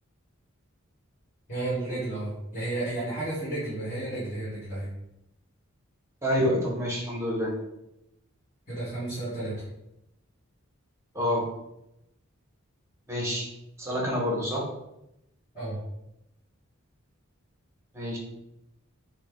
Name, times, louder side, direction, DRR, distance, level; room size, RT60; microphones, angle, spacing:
voice 1, 1.5-4.9 8.7-9.5 15.5-15.8, right 2 dB, 35° left, -11 dB, 1.5 m, -32 dB
voice 2, 6.2-7.5 11.1-11.4 13.1-13.5 13.8-14.6 17.9-18.2, equal, 15° right, -3 dB, 0.8 m, -27 dB
4.2 x 2.2 x 3.5 m, 0.86 s
head